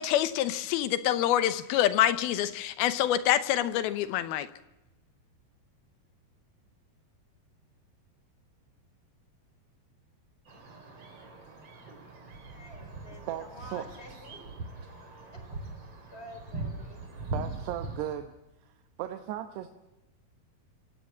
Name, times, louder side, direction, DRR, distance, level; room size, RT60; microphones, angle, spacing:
voice 1, 0.0-4.5, left 12 dB, 75° left, 13 dB, 2.6 m, -26 dB
sound 1, 10.5-18.1, right 2 dB, 35° right, 4.4 m, -41 dB
voice 2, 12.4-14.4 15.3-15.6 15.9-17.0, left 1 dB, 15° left, 6 dB, 4.0 m, -49 dB
voice 3, 13.3-13.9 17.3-18.3 18.7-19.7, right 12 dB, 80° right, 7 dB, 3.1 m, -36 dB
28.5 x 16.5 x 7.4 m, 1.0 s
omnidirectional pair, 4.7 m